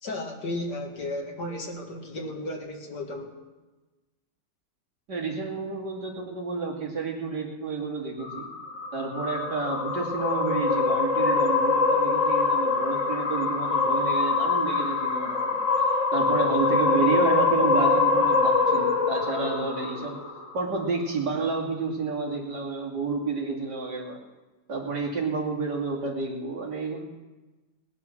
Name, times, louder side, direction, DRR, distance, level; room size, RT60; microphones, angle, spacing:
voice 1, 0.0-3.4, left 1 dB, 65° left, 2 dB, 2.4 m, -34 dB
voice 2, 5.1-8.5 8.9-15.6 16.1-20.2 20.5-24.2 24.7-27.0, right 4 dB, 65° right, -3 dB, 3.4 m, -30 dB
sound 1, 8.2-20.7, left 4 dB, 45° left, 1.5 m, -24 dB
20.0 x 10.0 x 6.1 m, 1.2 s
omnidirectional pair, 1.9 m